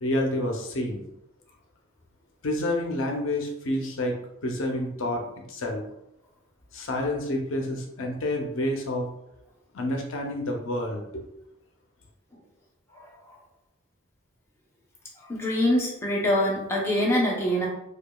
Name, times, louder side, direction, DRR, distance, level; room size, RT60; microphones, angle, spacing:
voice 1, 0.0-1.0 2.4-4.2 4.4-5.2 5.5-5.8 6.7-9.1 9.7-11.2, left 1 dB, 70° left, 2 dB, 0.6 m, -28 dB
voice 2, 15.3-17.7, left 1 dB, 15° left, -4 dB, 0.7 m, -24 dB
4.8 x 2.3 x 2.3 m, 0.82 s
head